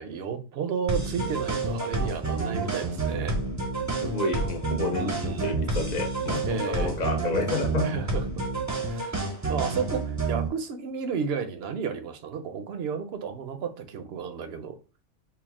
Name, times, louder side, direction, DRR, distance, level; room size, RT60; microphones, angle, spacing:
voice 1, 0.0-3.4 5.0-5.7 6.5-7.1 7.8-8.2 8.9-9.2 9.5-14.8, right 6 dB, 65° right, 0.8 m, -32 dB
sound 1, 0.9-10.5, right 3 dB, 20° right, 0.6 m, -29 dB
voice 2, 4.0-7.9, left 2 dB, 45° left, 0.7 m, -30 dB
4.6 x 2.1 x 3.5 m
omnidirectional pair, 1.2 m